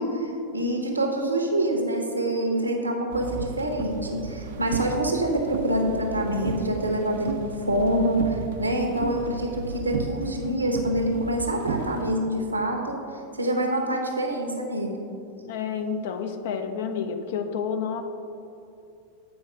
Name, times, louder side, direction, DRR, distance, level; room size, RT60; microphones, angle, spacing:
voice 1, 0.0-13.0 13.4-15.0, right 1 dB, 80° right, 2 dB, 0.9 m, -26 dB
sound 1, 3.1-12.0, right 5 dB, 55° right, 0.5 m, -35 dB
voice 2, 15.4-18.0, left 6 dB, 55° left, 6 dB, 0.6 m, -29 dB
8.3 x 4.7 x 4.8 m, 2.7 s
figure-of-eight pair, 90°, 0 cm